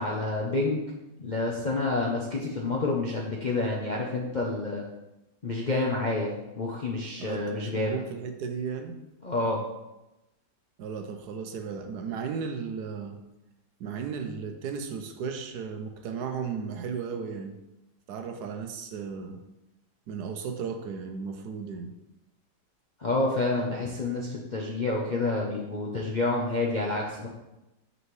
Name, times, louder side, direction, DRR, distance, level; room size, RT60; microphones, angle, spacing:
voice 1, 0.0-4.8 5.4-7.9 9.2-9.6 23.0-27.3, left 2 dB, 50° left, -2 dB, 0.5 m, -29 dB
voice 2, 7.2-9.0 10.8-13.2 13.8-17.6 18.1-19.4 20.1-21.9, right 6 dB, 75° right, 6 dB, 1.2 m, -35 dB
6.4 x 5.3 x 3.1 m, 0.95 s
omnidirectional pair, 1.8 m